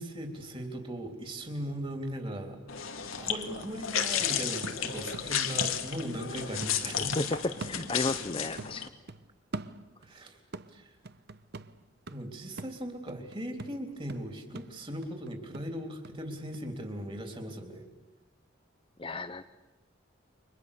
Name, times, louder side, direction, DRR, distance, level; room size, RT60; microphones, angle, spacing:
voice 1, 0.0-7.4 10.0-10.4 10.7-10.9 12.1-17.9, right 1 dB, 25° right, 4 dB, 3.5 m, -38 dB
sound 1, 2.7-8.9, left 8 dB, 80° left, 2.1 m, -33 dB
sound 2, 2.7-2.8 3.1-6.3 6.6-8.3 8.6-10.2 10.5-16.2 16.5-16.6, right 2 dB, 50° right, 0.9 m, -45 dB
voice 2, 7.2-8.9 19.0-19.4, left 2 dB, 25° left, 9 dB, 0.8 m, -33 dB
29.5 x 25.0 x 6.9 m, 1.1 s
head